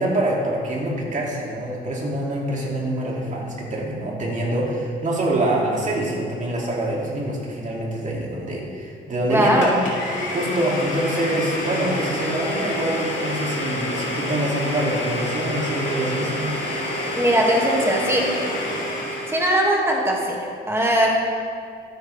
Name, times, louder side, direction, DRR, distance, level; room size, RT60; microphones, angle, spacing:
voice 1, 0.0-9.7 10.3-16.5, right 1 dB, 40° right, -3 dB, 2.7 m, -25 dB
voice 2, 9.3-9.8 17.2-18.3 19.3-21.2, equal, 10° right, -1 dB, 2.2 m, -20 dB
Domestic sounds home sounds, 9.6-19.6, left 1 dB, 70° left, 2.9 m, -28 dB
13.0 x 9.5 x 3.5 m, 2.2 s
cardioid pair, 90°, 20 cm